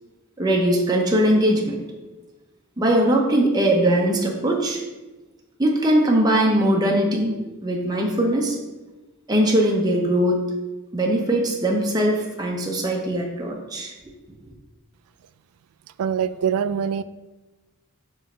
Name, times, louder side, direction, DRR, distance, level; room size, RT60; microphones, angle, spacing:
voice 1, 0.4-1.8 2.8-4.8 5.6-8.6 9.3-10.4 10.9-13.9, right 1 dB, 15° right, 0 dB, 0.7 m, -20 dB
voice 2, 16.0-17.0, right 7 dB, 80° right, 15 dB, 0.3 m, -23 dB
6.2 x 3.1 x 5.3 m, 1.1 s
head